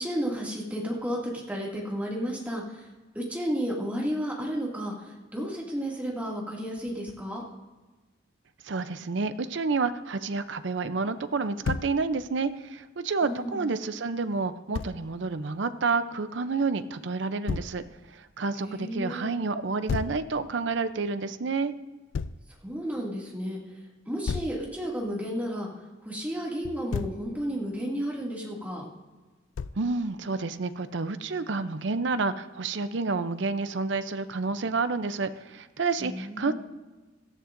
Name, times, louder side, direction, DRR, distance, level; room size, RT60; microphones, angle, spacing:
voice 1, 0.0-2.9 3.1-7.4 13.2-13.7 18.6-19.3 22.6-23.6 24.1-25.7 26.0-28.8 36.0-36.5, equal, 10° right, -4 dB, 2.3 m, -32 dB
voice 2, 8.6-17.8 18.1-21.7 29.8-36.5, right 4 dB, 65° right, 11 dB, 0.6 m, -29 dB
Thump thud, 11.6-11.9 14.7-14.9 17.5-17.7 19.9-20.2 22.1-22.4 24.3-24.6 26.6-27.2 29.6-29.9, left 5 dB, 70° left, 0.4 m, -31 dB
17.5 x 13.0 x 2.6 m, 1.2 s
head